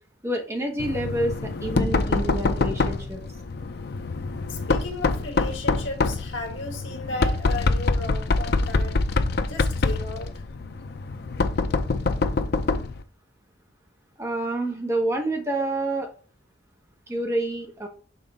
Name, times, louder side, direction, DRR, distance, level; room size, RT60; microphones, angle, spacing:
voice 1, 0.2-3.2 14.2-16.1 17.1-17.9, right 1 dB, 15° right, 1.0 m, -28 dB
Knock, 0.8-13.0, left 3 dB, 55° left, 0.5 m, -25 dB
voice 2, 4.5-9.0 9.5-10.4, left 2 dB, 75° left, 1.6 m, -35 dB
5.5 x 3.7 x 5.3 m
head